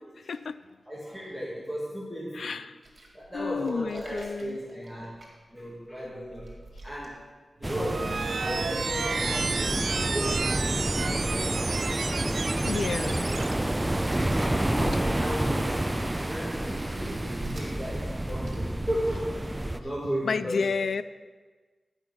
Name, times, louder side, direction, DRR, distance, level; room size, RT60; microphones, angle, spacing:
voice 1, 0.0-0.4 0.9-2.6 3.1-5.2 5.5-6.5 6.8-7.2 7.6-8.1 8.4-11.7 12.0-12.7 13.1-13.2 14.2-19.4 19.7-20.7, equal, ahead, -6 dB, 2.0 m, -35 dB
voice 2, 2.3-2.7 3.3-4.6 12.7-13.2 14.7-15.3 20.2-21.0, left 5 dB, 85° left, 14 dB, 0.3 m, -31 dB
sound 1, 2.8-7.6 8.0-8.5 8.8-19.6, right 2 dB, 50° right, 2.2 m, -49 dB
sound 2, 7.6-19.8, right 1 dB, 20° right, 0.5 m, -29 dB
sound 3, 7.6-13.5, right 4 dB, 75° right, 0.5 m, -32 dB
12.0 x 5.4 x 6.0 m, 1.4 s
wide cardioid pair, 70°, 0 cm